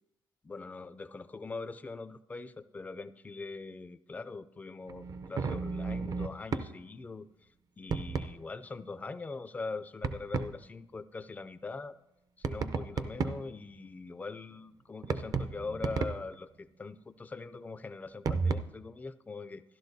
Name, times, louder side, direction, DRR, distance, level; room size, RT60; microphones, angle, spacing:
voice 1, 0.4-7.3 7.8-12.0 12.4-19.6, left 3 dB, 20° left, 12 dB, 0.4 m, -42 dB
sound 1, 4.9-6.7 7.9-8.4 10.0-10.5 12.4-13.6 15.0-16.3 18.2-18.6, right 5 dB, 45° right, 0.5 m, -33 dB
13.5 x 11.5 x 2.7 m, 0.93 s
cardioid pair, 130°, 9 cm